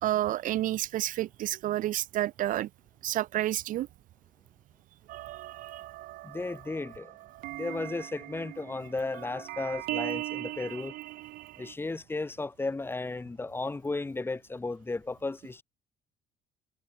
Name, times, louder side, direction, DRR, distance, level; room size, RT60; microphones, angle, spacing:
voice 1, 0.0-2.7 3.0-3.9 5.6-5.8, right 14 dB, 60° right, 0.5 m, -29 dB
sound 1, 5.1-11.7, right 18 dB, 90° right, 1.6 m, -40 dB
voice 2, 6.2-7.1 7.5-10.9 11.6-15.6, left 3 dB, 15° left, 1.0 m, -34 dB
cardioid pair, 125°, 15 cm